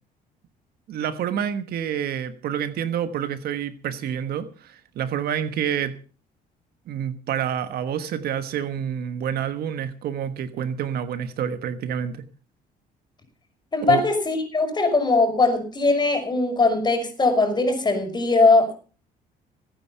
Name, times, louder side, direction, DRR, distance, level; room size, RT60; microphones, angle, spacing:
voice 1, 0.9-6.0 6.9-12.2 13.8-14.0, right 9 dB, 65° right, 1.4 m, -28 dB
voice 2, 13.7-18.7, left 3 dB, 25° left, 5.9 m, -20 dB
19.5 x 9.4 x 5.6 m
cardioid pair, 110°, 17 cm